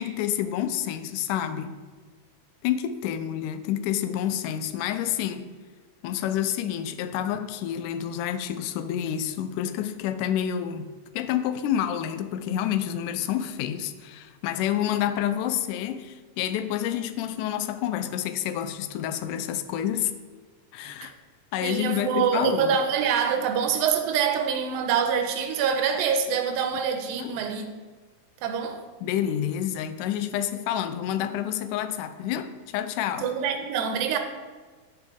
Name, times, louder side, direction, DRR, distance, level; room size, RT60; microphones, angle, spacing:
voice 1, 0.0-1.8 2.6-5.5 6.0-10.9 11.1-20.1 20.7-21.1 21.5-22.8 27.2-27.4 29.0-33.3, left 10 dB, 80° left, 10 dB, 1.9 m, -28 dB
voice 2, 21.6-27.7 28.4-28.8 33.2-34.2, right 7 dB, 90° right, 6 dB, 2.4 m, -25 dB
10.5 x 6.6 x 3.7 m, 1.4 s
omnidirectional pair, 4.1 m